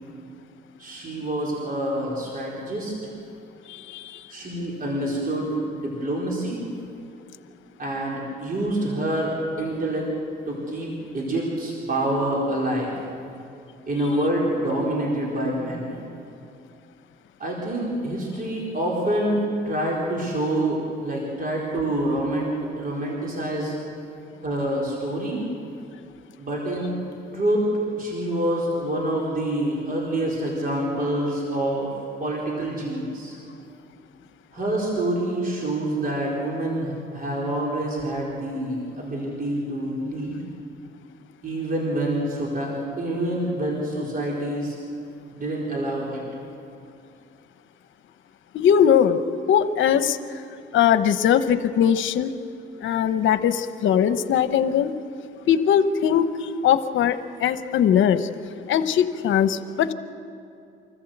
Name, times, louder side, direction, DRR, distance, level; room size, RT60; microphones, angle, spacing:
voice 1, 0.8-2.9 4.3-6.6 7.8-10.1 10.5-12.9 13.9-16.0 17.4-19.4 19.6-23.7 24.4-25.4 26.4-26.9 27.3-27.7 28.0-31.9 32.2-33.4 34.5-40.4 41.4-44.8 45.3-46.2, right 1 dB, 45° right, -3 dB, 4.4 m, -26 dB
voice 2, 3.7-4.2 48.5-49.2 49.5-50.2 50.7-52.3 52.8-54.9 55.5-56.3 56.6-58.3 58.7-59.9, left 9 dB, 75° left, 11 dB, 0.9 m, -20 dB
25.0 x 14.5 x 8.0 m, 2.6 s
cardioid pair, 90°, 20 cm